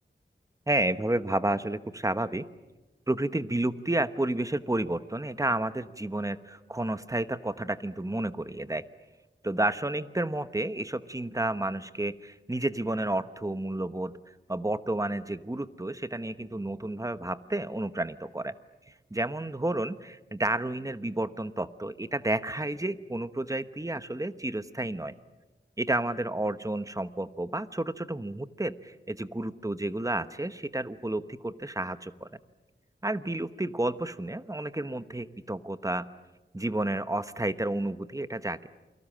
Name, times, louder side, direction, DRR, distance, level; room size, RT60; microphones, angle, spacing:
voice 1, 0.7-2.4 3.1-8.8 9.4-18.5 18.9-25.1 25.8-32.3 33.0-36.1 36.5-38.7, right 1 dB, 15° right, 12 dB, 1.1 m, -31 dB
29.0 x 24.0 x 7.5 m, 1.1 s
wide cardioid pair, 75°, 19 cm